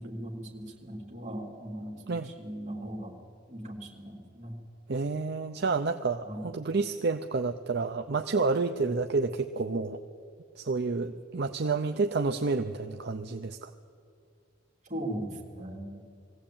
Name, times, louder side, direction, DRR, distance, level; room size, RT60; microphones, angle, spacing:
voice 1, 0.0-3.1 3.5-4.6 6.2-6.5 8.7-8.9 14.8-16.0, right 1 dB, 40° right, 0 dB, 3.4 m, -39 dB
voice 2, 4.9-10.0 10.6-13.7, right 4 dB, 60° right, 6 dB, 0.7 m, -29 dB
21.0 x 16.0 x 8.8 m, 2.3 s
head